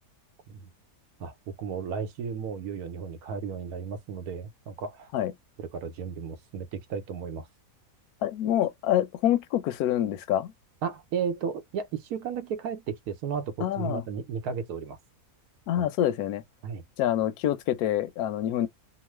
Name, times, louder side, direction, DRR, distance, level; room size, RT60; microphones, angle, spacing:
voice 1, 1.2-5.1 5.6-7.5 10.8-15.0 15.8-15.9 16.6-16.8, right 6 dB, 90° right, 1.2 m, -34 dB
voice 2, 8.2-10.5 13.6-14.0 15.7-16.4 17.0-18.7, left 11 dB, 85° left, 1.1 m, -26 dB
3.0 x 2.1 x 3.1 m
omnidirectional pair, 1.6 m